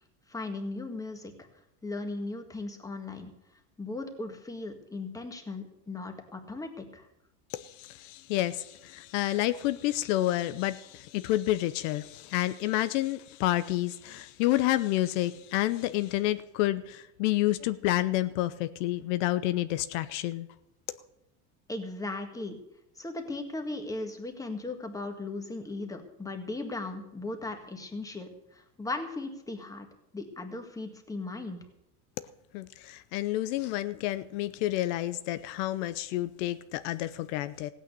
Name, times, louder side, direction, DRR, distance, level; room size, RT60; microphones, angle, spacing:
voice 1, 0.3-1.5 1.8-3.3 3.8-7.1 21.7-22.6 22.9-29.9 30.1-31.6, left 2 dB, 10° left, 1.7 m, -37 dB
voice 2, 7.5-20.5 32.5-37.7, left 15 dB, 80° left, 0.8 m, -29 dB
16.0 x 9.1 x 6.7 m
supercardioid pair, 140°, 37 cm